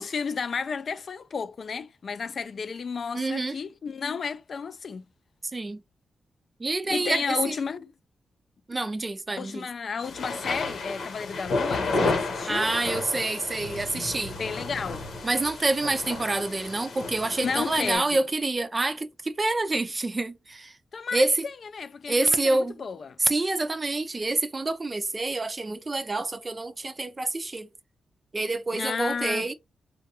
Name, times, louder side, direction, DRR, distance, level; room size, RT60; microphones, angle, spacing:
voice 1, 0.0-5.0 6.9-7.9 9.4-12.7 14.4-15.0 17.4-18.2 20.9-23.2 28.7-29.5, left 5 dB, 55° left, 0.4 m, -32 dB
voice 2, 3.1-3.6 5.5-5.8 6.6-7.6 8.7-9.7 12.5-14.4 15.2-20.8 21.1-21.4 22.1-22.8 23.2-27.7 28.3-29.5, right 2 dB, 25° right, 0.4 m, -27 dB
sound 1, 10.0-17.9, left 3 dB, 85° left, 1.0 m, -32 dB
3.3 x 2.3 x 2.8 m
cardioid pair, 95°, 0 cm